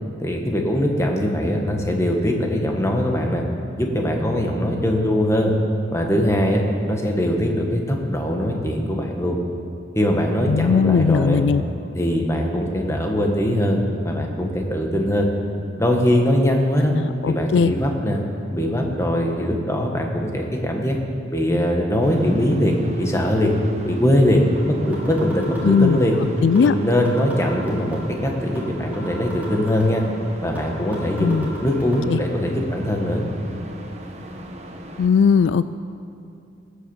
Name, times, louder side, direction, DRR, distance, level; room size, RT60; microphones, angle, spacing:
voice 1, 0.2-3.4 3.8-5.5 5.9-6.6 6.9-9.4 9.9-11.4 11.9-15.3 15.8-16.9 17.2-18.2 18.5-21.0 21.3-23.5 23.8-26.2 26.6-30.0 30.4-33.2, equal, 15° left, 1 dB, 1.5 m, -21 dB
voice 2, 10.5-11.6 16.9-17.7 25.6-26.0 26.4-26.7 31.2-31.5 32.1-32.2 35.0-35.6, left 6 dB, 70° left, 14 dB, 0.3 m, -18 dB
sound 1, 22.0-35.1, right 1 dB, 35° right, 1.2 m, -37 dB
sound 2, 24.6-24.7 24.9-26.1 26.6-26.7 26.9-28.1 28.6-28.7 28.9-30.1 30.6-30.7 30.9-32.0, equal, 10° right, 2.8 m, -39 dB
18.0 x 8.4 x 7.2 m, 2.5 s
head